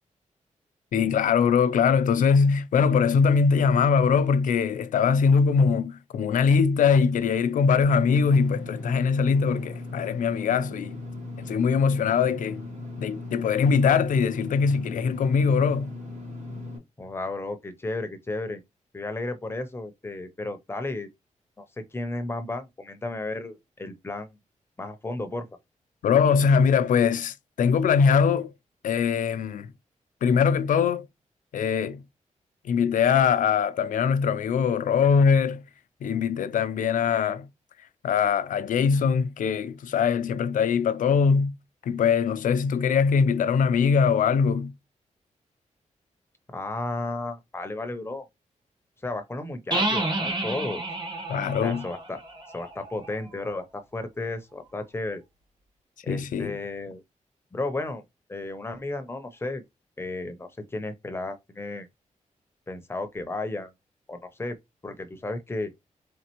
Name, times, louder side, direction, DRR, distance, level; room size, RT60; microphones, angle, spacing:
voice 1, 0.9-11.0 11.4-12.6 13.0-15.9 26.0-28.5 28.8-29.7 30.2-31.1 31.5-32.0 32.6-35.6 36.0-37.5 38.0-41.5 41.9-44.7 51.3-51.9 56.1-56.5, left 6 dB, 85° left, 0.5 m, -22 dB
Engine / Mechanisms, 7.8-16.8, left 2 dB, 70° right, 2.4 m, -38 dB
voice 2, 17.0-18.6 18.9-21.1 21.6-24.4 24.8-25.5 46.5-48.2 49.0-50.8 51.6-52.2 52.5-55.2 56.0-57.0 57.5-58.0 58.3-59.6 60.0-61.9 62.7-63.7 64.1-64.6 64.8-65.7, left 2 dB, 20° left, 0.6 m, -33 dB
sound 1, 49.7-53.4, right 2 dB, 35° right, 1.1 m, -30 dB
4.2 x 3.2 x 3.0 m
wide cardioid pair, 170°, 13 cm